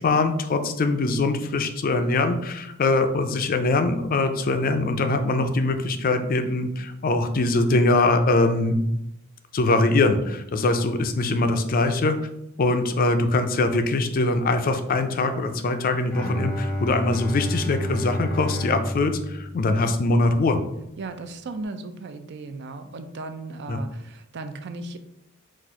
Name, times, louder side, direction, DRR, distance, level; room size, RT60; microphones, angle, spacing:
voice 1, 0.0-8.8 9.5-12.2 12.6-20.6 23.7-23.8, left 2 dB, 40° left, 8 dB, 0.4 m, -22 dB
Bowed string instrument, 16.1-20.3, equal, 5° left, 0.7 m, -30 dB
voice 2, 21.0-25.0, right 3 dB, 50° right, 8 dB, 0.4 m, -36 dB
4.1 x 2.5 x 4.6 m, 0.80 s
head